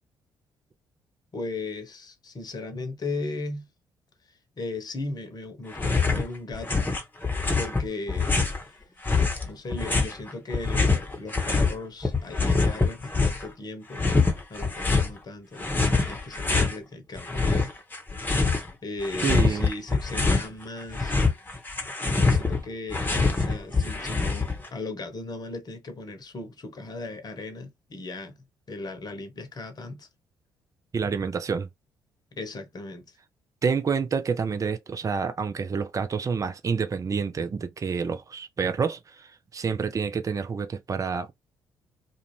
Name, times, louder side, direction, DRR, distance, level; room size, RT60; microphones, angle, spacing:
voice 1, 1.3-3.7 4.6-6.9 7.4-8.4 9.4-14.0 14.5-17.7 18.8-21.1 22.3-28.4 28.7-30.1 32.3-33.2, left 2 dB, 40° left, 0.9 m, -37 dB
sound 1, 5.7-6.3 6.5-8.6 9.0-11.7 12.0-13.5 13.9-15.1 15.6-16.8 17.2-18.7 19.0-20.5 20.8-24.7, left 4 dB, 20° left, 1.0 m, -24 dB
voice 2, 19.2-19.7 30.9-31.7 33.6-41.3, right 5 dB, 30° right, 0.6 m, -28 dB
2.5 x 2.3 x 3.1 m
figure-of-eight pair, 45°, 11 cm